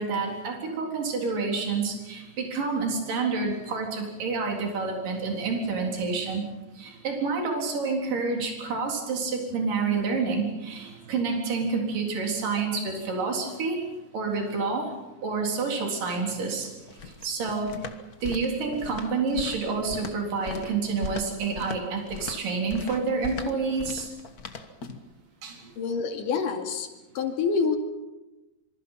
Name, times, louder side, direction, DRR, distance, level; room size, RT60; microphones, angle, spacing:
voice 1, 0.0-6.4 6.8-13.9 14.1-14.9 15.2-16.7 17.0-17.8 18.2-24.1 25.4-25.6, right 4 dB, 70° right, 1 dB, 5.4 m, -28 dB
sound 1, 16.3-25.1, left 4 dB, 50° left, 1.0 m, -40 dB
voice 2, 25.8-26.9 27.2-27.8, left 5 dB, 70° left, 4 dB, 3.9 m, -26 dB
26.5 x 25.0 x 5.7 m, 1.0 s
omnidirectional pair, 4.0 m